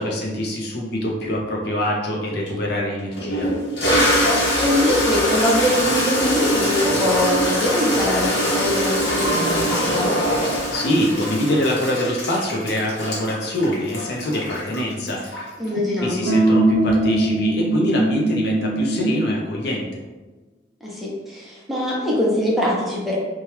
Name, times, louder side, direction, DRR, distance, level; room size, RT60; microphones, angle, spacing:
voice 1, 0.0-3.5 10.7-20.0, left 1 dB, 60° left, -1 dB, 0.6 m, -24 dB
Toilet flush, 2.5-2.6 3.2-15.6, equal, 85° left, 1.0 m, -22 dB
voice 2, 4.3-10.1 15.6-16.3 20.8-23.2, left 1 dB, ahead, -6 dB, 0.6 m, -23 dB
sound 1, 16.3-19.4, right 2 dB, 80° right, 0.6 m, -20 dB
2.9 x 2.2 x 3.1 m, 1.2 s
head